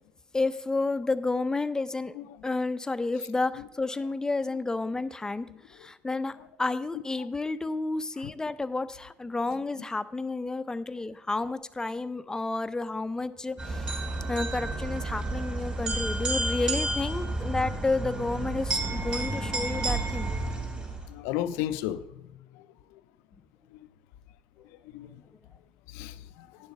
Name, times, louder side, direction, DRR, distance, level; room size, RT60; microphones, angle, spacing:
voice 1, 0.3-2.1 2.4-20.3, left 3 dB, 15° left, 0.5 m, -31 dB
sound 1, 13.6-21.1, right 2 dB, 30° right, 4.2 m, -31 dB
voice 2, 21.1-22.2 22.5-22.7 22.9-23.0 24.9-25.2 25.9-26.5, left 12 dB, 85° left, 0.4 m, -34 dB
10.0 x 7.1 x 5.2 m
supercardioid pair, 80°, 4 cm